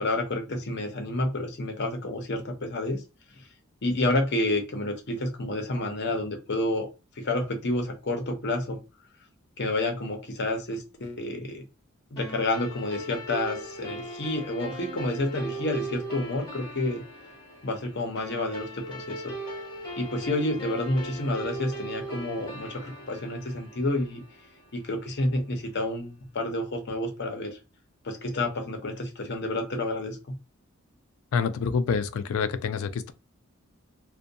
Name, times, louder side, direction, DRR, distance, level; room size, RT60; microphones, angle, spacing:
voice 1, 0.0-3.0 3.4-3.5 3.8-6.9 7.2-8.8 9.6-11.6 12.1-17.0 17.6-19.3 20.0-24.2 24.7-27.6 28.0-30.3, left 2 dB, 55° left, 0.7 m, -29 dB
sound 1, 12.2-24.9, right 1 dB, 25° left, 1.0 m, -39 dB
voice 2, 31.3-33.1, left 5 dB, 85° left, 0.3 m, -27 dB
2.5 x 2.2 x 2.6 m
head